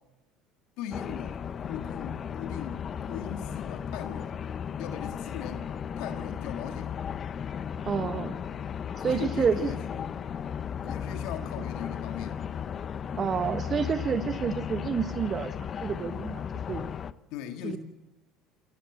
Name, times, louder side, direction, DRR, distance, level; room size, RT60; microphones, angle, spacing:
voice 1, 0.8-4.4 4.8-5.7 6.0-6.9 9.0-10.1 10.8-12.4 17.3-17.8, left 9 dB, 65° left, 6 dB, 1.8 m, -39 dB
sound 1, 0.9-17.1, left 8 dB, 40° left, 0.9 m, -35 dB
voice 2, 7.8-8.4 9.0-9.6 13.2-15.5 15.8-16.8 17.6-17.8, right 6 dB, 40° right, 9 dB, 1.4 m, -29 dB
22.0 x 17.5 x 7.3 m, 1.1 s
hypercardioid pair, 75°, 0 cm